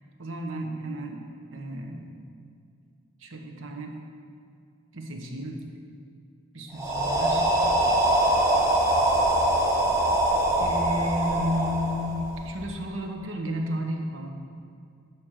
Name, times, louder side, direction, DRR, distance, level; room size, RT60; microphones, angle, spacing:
voice 1, 0.2-1.2 1.5-2.3 3.2-4.0 4.9-5.6 6.5-7.5 10.6-14.3, equal, 75° right, 2 dB, 1.1 m, -32 dB
sound 1, 6.8-12.7, right 1 dB, 15° right, 0.9 m, -23 dB
10.5 x 4.6 x 6.5 m, 2.3 s
head